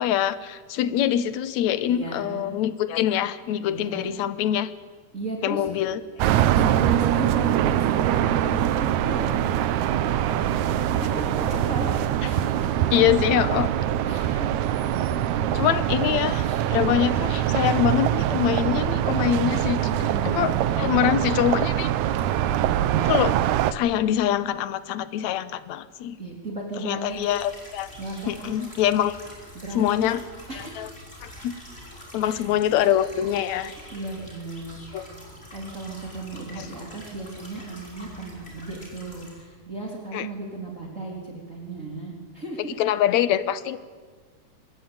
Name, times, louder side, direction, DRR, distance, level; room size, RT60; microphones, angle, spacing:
voice 1, 0.0-4.7 5.4-6.0 12.9-13.7 15.5-19.9 20.4-21.9 23.1-23.4 23.7-26.2 26.8-27.9 28.3-29.2 29.8-30.2 30.8-30.9 31.2-31.5 32.1-33.7 34.9-35.1 36.6-36.7 40.1-40.3 42.8-43.8, left 11 dB, 70° left, 14 dB, 2.2 m, -24 dB
voice 2, 1.9-2.5 3.6-4.1 5.1-5.7 6.5-9.4 10.9-12.0 12.2-12.8 14.1-15.6 16.4-16.6 19.9-21.0 22.3-23.2 26.2-27.3 28.0-28.7 29.5-30.0 30.5-30.9 32.2-32.4 33.9-35.1 35.5-42.8, right 3 dB, 25° right, -1 dB, 3.7 m, -35 dB
sound 1, 6.2-23.7, right 11 dB, 75° right, 2.2 m, -23 dB
sound 2, 27.0-39.4, left 1 dB, 20° left, 5.6 m, -45 dB
25.5 x 21.0 x 8.9 m, 1.5 s
omnidirectional pair, 3.5 m